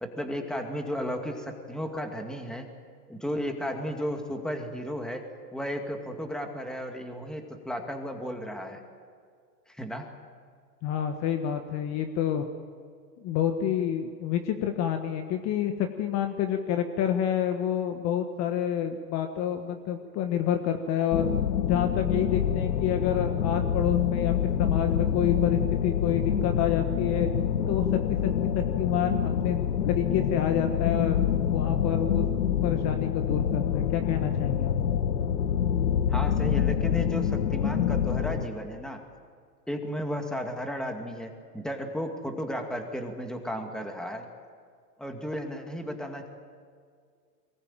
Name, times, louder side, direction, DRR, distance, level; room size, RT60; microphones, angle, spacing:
voice 1, 0.0-2.7 3.1-5.2 5.5-8.8 9.7-10.1 36.1-39.0 39.7-44.3 45.0-46.3, equal, ahead, 4 dB, 2.3 m, -34 dB
voice 2, 10.8-12.5 13.2-21.3 21.7-27.3 27.7-27.8 28.2-31.2 31.5-32.2 32.6-34.7, left 9 dB, 30° left, 6 dB, 1.4 m, -28 dB
sound 1, 21.1-38.4, left 8 dB, 90° left, 1.4 m, -26 dB
23.0 x 20.0 x 9.1 m, 2.1 s
hypercardioid pair, 130°, 49 cm